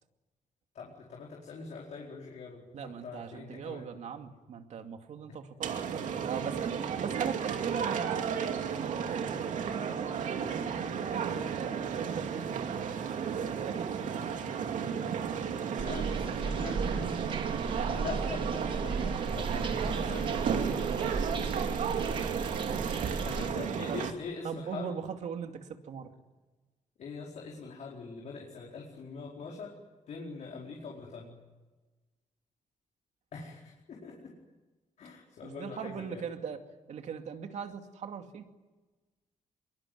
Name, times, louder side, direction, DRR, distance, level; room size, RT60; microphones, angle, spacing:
voice 1, 0.7-3.9 14.0-14.1 15.7-17.5 17.9-21.1 23.2-25.0 27.0-29.8 30.1-31.4 33.3-34.3 35.0-36.2, left 4 dB, 65° left, -2 dB, 4.8 m, -43 dB
voice 2, 2.7-8.4 8.8-9.4 11.0-12.8 13.4-14.2 20.7-21.4 21.9-24.0 24.4-26.1 35.4-36.6 36.9-38.5, right 7 dB, 65° right, 5 dB, 2.5 m, -40 dB
sound 1, 5.6-24.1, right 7 dB, 85° right, 2.7 m, -33 dB
sound 2, 15.8-23.5, right 4 dB, 40° right, 1.9 m, -36 dB
26.0 x 22.5 x 9.5 m, 1.2 s
wide cardioid pair, 160°, 13 cm